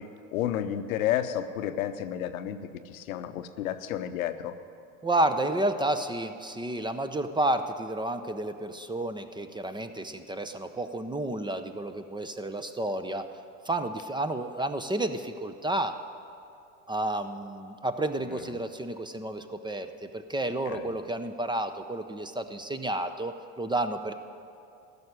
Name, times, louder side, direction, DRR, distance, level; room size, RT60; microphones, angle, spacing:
voice 1, 0.0-4.6 18.3-18.5 20.7-20.9, left 11 dB, 80° left, 10 dB, 0.8 m, -32 dB
voice 2, 5.0-13.3 13.7-15.9 16.9-24.1, right 1 dB, 10° right, 9 dB, 0.6 m, -31 dB
14.5 x 6.8 x 10.0 m, 2.6 s
hypercardioid pair, 85°, 41 cm